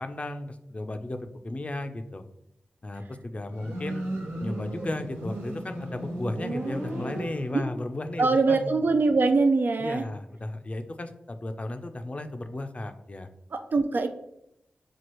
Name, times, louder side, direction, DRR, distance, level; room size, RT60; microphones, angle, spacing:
voice 1, 0.0-2.2 2.8-4.1 4.4-8.8 9.8-13.3, left 2 dB, 35° left, 7 dB, 0.5 m, -35 dB
Motorcycle, 3.5-7.9, right 1 dB, 80° right, 0.8 m, -35 dB
voice 2, 8.2-10.0 13.5-14.1, right 3 dB, 60° right, 7 dB, 0.4 m, -23 dB
6.0 x 2.4 x 3.0 m, 0.78 s
cardioid pair, 50°, 4 cm